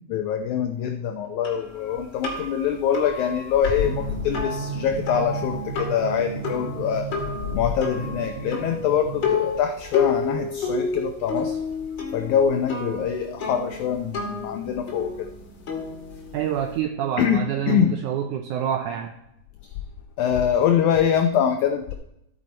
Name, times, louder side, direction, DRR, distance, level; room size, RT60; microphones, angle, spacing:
voice 1, 0.1-7.1 7.5-11.6 12.1-15.3 17.2-17.9 20.2-21.9, left 8 dB, 85° left, 6 dB, 1.7 m, -24 dB
sound 1, 1.4-16.8, left 5 dB, 35° left, 2.1 m, -31 dB
Drum, 3.8-9.4, right 5 dB, 65° right, 2.2 m, -34 dB
voice 2, 16.3-19.1, right 9 dB, 85° right, 6 dB, 1.7 m, -27 dB
14.0 x 8.2 x 4.4 m, 0.81 s
omnidirectional pair, 4.2 m